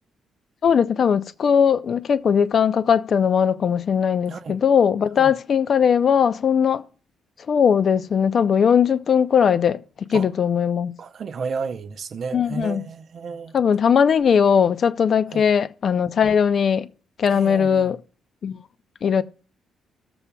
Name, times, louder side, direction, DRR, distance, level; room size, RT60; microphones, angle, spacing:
voice 1, 0.6-6.8 7.5-9.8 10.1-10.9 12.3-12.8 13.5-16.9 17.2-18.0 18.4-18.6 19.0-19.2, left 7 dB, 45° left, 0.4 m, -19 dB
voice 2, 4.3-4.6 5.2-5.3 10.1-10.3 11.0-13.5 15.3-15.5 17.3-18.0, right 5 dB, 45° right, 0.6 m, -32 dB
16.5 x 7.0 x 2.2 m
cardioid pair, 135°, 0 cm